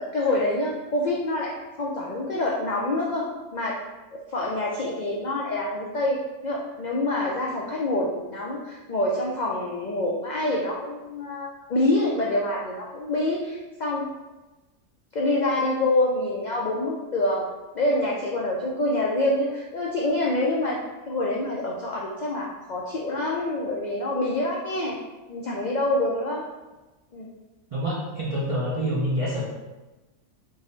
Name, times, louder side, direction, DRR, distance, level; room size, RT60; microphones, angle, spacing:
voice 1, 0.0-3.3 3.5-3.8 4.1-14.0 15.1-17.5 17.7-20.8 21.1-25.0 25.3-26.4 27.1-27.3, left 1 dB, 75° left, -3 dB, 0.4 m, -26 dB
voice 2, 27.7-29.4, equal, 65° right, -5 dB, 0.3 m, -26 dB
3.8 x 2.0 x 3.8 m, 1.1 s
omnidirectional pair, 1.3 m